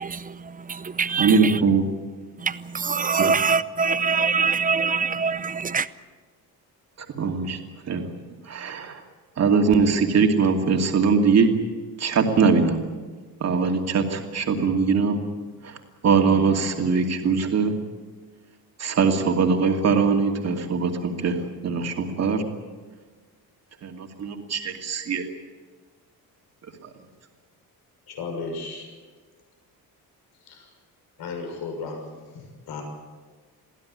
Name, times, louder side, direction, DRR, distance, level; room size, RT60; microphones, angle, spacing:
voice 1, 0.0-1.6 2.4-5.9, right 5 dB, 20° right, 0.7 m, -24 dB
voice 2, 1.2-1.8 7.2-7.6 7.9-8.0 8.5-9.0 9.4-11.5 12.0-12.8 13.4-15.2 15.6-15.7 16.0-17.7 18.8-21.4 21.6-22.4 23.8-25.2, right 5 dB, 40° right, 2.6 m, -21 dB
voice 3, 28.1-28.8 30.5-30.6 31.2-32.0 32.3-32.8, left 4 dB, 80° left, 6.4 m, -34 dB
23.0 x 16.0 x 10.0 m
cardioid pair, 155°, 38 cm